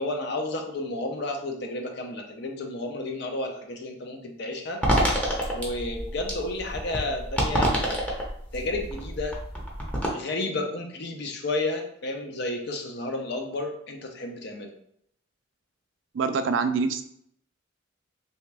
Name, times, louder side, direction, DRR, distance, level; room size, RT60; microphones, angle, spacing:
voice 1, 0.0-4.8 5.5-8.0 8.5-9.4 10.1-14.7, left 2 dB, 55° left, 3 dB, 0.6 m, -32 dB
sound 1, 4.8-10.1, equal, 5° left, 0.7 m, -27 dB
voice 2, 16.1-17.0, right 5 dB, 65° right, 9 dB, 0.3 m, -25 dB
3.4 x 2.8 x 3.3 m, 0.70 s
head